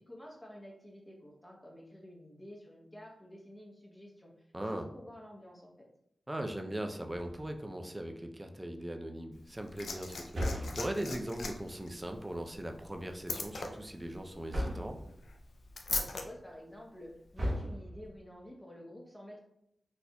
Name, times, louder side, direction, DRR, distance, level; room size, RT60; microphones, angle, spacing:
voice 1, 0.1-5.9 15.9-19.4, equal, 15° left, -2 dB, 1.0 m, -50 dB
voice 2, 4.5-4.9 6.3-15.0, right 1 dB, 20° right, 4 dB, 0.5 m, -39 dB
sound 1, 7.1-7.8 10.3-11.2 14.5-15.1 17.3-18.2, equal, 55° right, 1.0 m, -36 dB
Liquid, 9.3-16.2 17.3-17.4, left 3 dB, 80° left, 0.4 m, -41 dB
4.2 x 2.6 x 2.3 m, 0.79 s
cardioid pair, 45°, 0 cm